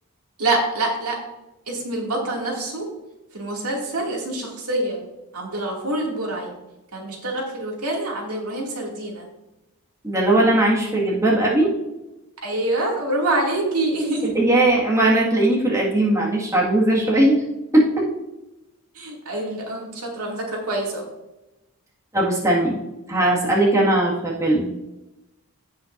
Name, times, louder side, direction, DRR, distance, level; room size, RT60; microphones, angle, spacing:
voice 1, 0.4-1.2 1.7-2.9 3.3-5.0 5.3-6.5 6.9-9.3 12.4-14.4 18.9-21.1, right 2 dB, 90° right, -2 dB, 2.5 m, -26 dB
voice 2, 10.0-11.7 14.3-17.4 17.7-18.1 22.1-22.8 23.1-24.7, right 1 dB, 15° right, -5 dB, 1.9 m, -19 dB
16.0 x 5.8 x 2.6 m, 0.98 s
head